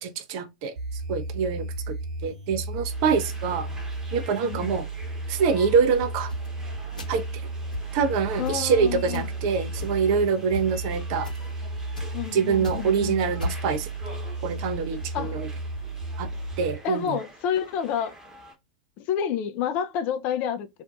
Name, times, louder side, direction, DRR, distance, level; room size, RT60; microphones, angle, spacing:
voice 1, 0.0-0.7 1.1-1.9 2.2-3.7 4.1-4.8 5.3-6.3 7.1-7.3 7.9-11.3 12.3-13.9 14.4-15.5 16.2-16.3 16.6-17.2, right 6 dB, 45° right, 0.4 m, -25 dB
sound 1, 0.8-16.8, right 2 dB, 60° right, 0.9 m, -34 dB
sound 2, 2.9-18.5, right 2 dB, 10° right, 0.8 m, -47 dB
voice 2, 4.4-4.7 8.4-9.3 12.1-13.2 15.1-15.4 16.8-18.2 19.0-20.7, left 8 dB, 35° left, 0.3 m, -29 dB
sound 3, 6.3-6.5 7.0-7.3 7.7-7.9 8.4-8.7 9.1-9.3 9.8-10.2 10.5-10.7 11.2-11.5 12.0-12.2 12.5-12.9 13.4-13.7, left 2 dB, 75° left, 0.9 m, -34 dB
2.5 x 2.1 x 2.4 m
figure-of-eight pair, 95°, 4 cm